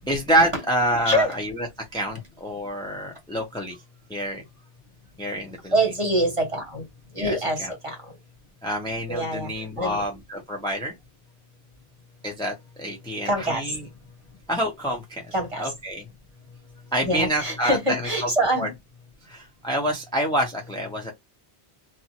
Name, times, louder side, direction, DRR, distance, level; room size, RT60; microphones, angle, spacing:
voice 1, 0.1-1.7 1.9-3.8 4.1-4.4 5.2-5.7 7.2-7.7 8.6-10.9 12.2-13.8 14.5-15.2 15.6-16.0 16.9-18.3 18.6-18.7 19.3-21.1, right 1 dB, 5° left, 0.8 m, -27 dB
voice 2, 5.7-6.8 7.1-8.0 9.1-9.5 9.8-10.0 13.2-13.7 15.3-15.7 17.0-18.7, right 1 dB, 30° right, 1.3 m, -25 dB
2.8 x 2.5 x 2.8 m
omnidirectional pair, 1.1 m